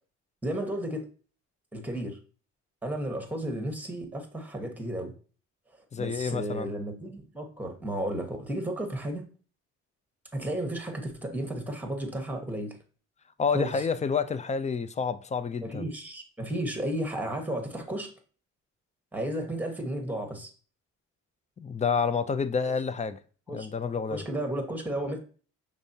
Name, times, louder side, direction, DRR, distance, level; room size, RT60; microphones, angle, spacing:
voice 1, 0.4-1.1 1.7-2.2 2.8-5.1 6.0-9.2 10.3-12.8 13.5-13.7 15.6-18.1 19.1-20.5 23.5-23.7 24.1-25.2, right 1 dB, 5° right, 1.2 m, -33 dB
voice 2, 5.9-6.7 13.4-15.8 21.6-23.2 23.5-24.2, left 5 dB, 25° left, 0.4 m, -29 dB
5.3 x 3.6 x 2.7 m
cardioid pair, 90°, 30 cm